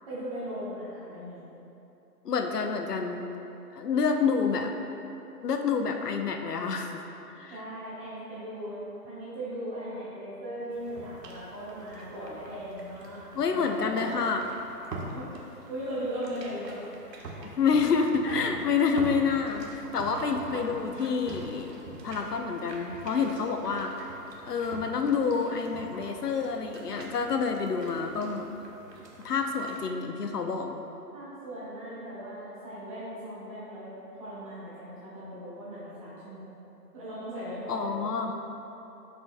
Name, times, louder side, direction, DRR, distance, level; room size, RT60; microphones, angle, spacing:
voice 1, 0.1-1.4 7.5-14.2 15.0-16.8 31.1-33.9 34.2-36.6 36.9-38.0, equal, 20° right, -11 dB, 1.0 m, -38 dB
voice 2, 2.2-3.3 3.7-4.7 5.4-7.0 7.4-7.5 13.3-14.4 17.4-21.7 22.0-23.9 24.4-28.5 29.2-30.8 37.7-38.4, left 5 dB, 70° left, 4 dB, 0.8 m, -28 dB
sound 1, 10.7-29.9, right 2 dB, 90° right, 1.3 m, -44 dB
10.0 x 5.4 x 2.2 m, 3.0 s
hypercardioid pair, 165°, 48 cm